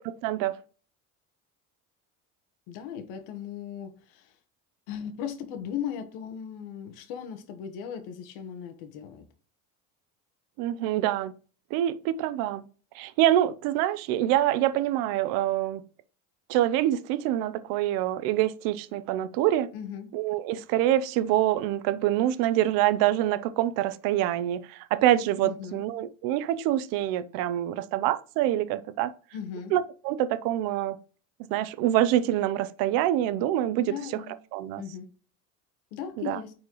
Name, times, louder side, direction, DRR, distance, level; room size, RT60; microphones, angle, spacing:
voice 1, 0.2-0.6 10.6-11.3 11.7-12.6 12.9-15.8 16.5-19.7 20.1-29.1 29.7-31.0 31.5-33.9 34.5-34.8 36.2-36.4, right 13 dB, 70° right, 0.6 m, -25 dB
voice 2, 2.7-4.3 4.9-9.2 19.7-20.1 25.4-25.8 29.3-29.7 33.8-34.3 34.8-35.1 35.9-36.5, left 8 dB, 85° left, 1.2 m, -37 dB
9.4 x 4.3 x 3.0 m
cardioid pair, 150°, 35 cm